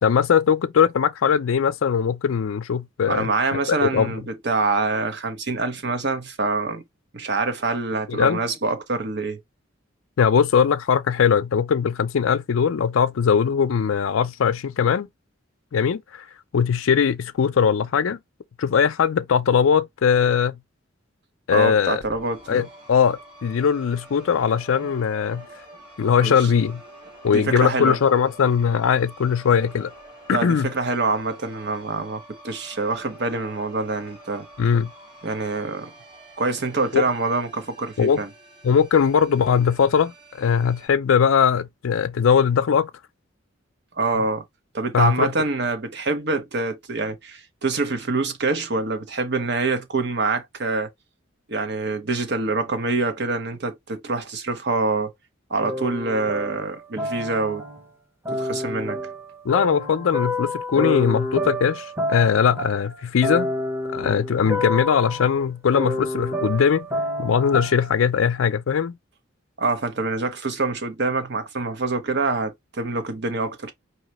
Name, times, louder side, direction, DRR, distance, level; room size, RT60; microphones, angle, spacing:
voice 1, 0.0-4.1 8.1-8.4 10.2-15.1 15.7-16.2 16.5-18.2 18.6-20.5 21.5-22.0 22.5-25.4 26.0-26.8 27.2-29.9 30.3-30.7 34.6-34.9 36.9-37.0 38.0-38.2 38.6-42.9 44.9-45.3 59.4-63.5 63.9-66.9 67.2-68.9, left 7 dB, 85° left, 0.4 m, -20 dB
voice 2, 3.1-6.8 7.1-9.4 21.5-22.6 25.3-25.6 26.2-26.5 27.3-28.0 30.3-34.5 35.2-35.9 36.4-38.3 44.0-44.4 44.7-50.9 51.5-55.1 55.5-57.6 58.3-59.0 69.6-73.7, right 3 dB, 60° right, 1.1 m, -25 dB
sound 1, 22.0-40.9, right 1 dB, 30° right, 3.5 m, -47 dB
sound 2, 55.6-57.9 58.3-68.0, left 1 dB, 10° right, 0.9 m, -29 dB
4.9 x 2.9 x 3.0 m
head